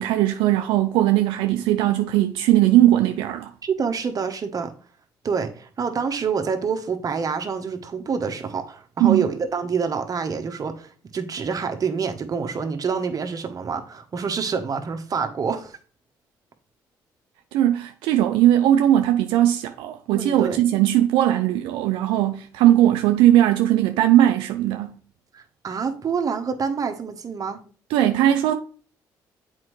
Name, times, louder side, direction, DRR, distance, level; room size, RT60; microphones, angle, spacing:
voice 1, 0.0-3.5 9.0-9.3 17.5-25.0 27.9-28.5, right 12 dB, 85° right, 0.4 m, -19 dB
voice 2, 3.6-4.7 5.2-15.8 20.1-20.6 25.3-27.6, right 6 dB, 45° right, 1.0 m, -27 dB
7.4 x 4.4 x 3.1 m
supercardioid pair, 65°, 8 cm